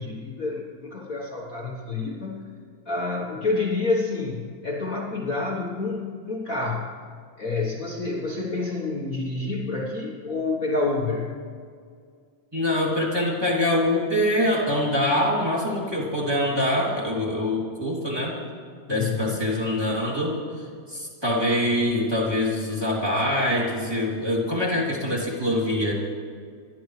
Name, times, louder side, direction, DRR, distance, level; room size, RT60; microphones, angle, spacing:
voice 1, 0.0-2.4 2.8-6.9 7.4-11.4 18.9-19.4, left 3 dB, 50° left, -3 dB, 1.0 m, -28 dB
voice 2, 12.5-18.4 18.9-25.9, left 1 dB, 10° right, -5 dB, 2.7 m, -24 dB
28.0 x 12.5 x 3.3 m, 2.1 s
omnidirectional pair, 3.5 m